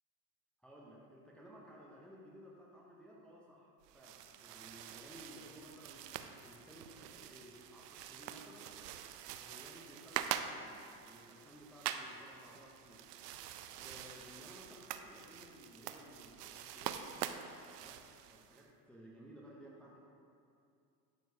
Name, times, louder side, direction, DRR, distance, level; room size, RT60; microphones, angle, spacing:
voice 1, 0.6-8.7 9.2-13.1 13.7-17.4 17.8-18.0 18.3-20.0, equal, ahead, -4 dB, 0.6 m, -57 dB
sound 1, 3.8-18.6, right 10 dB, 80° right, 0.6 m, -45 dB
10.5 x 4.5 x 2.7 m, 2.5 s
hypercardioid pair, 115°, 48 cm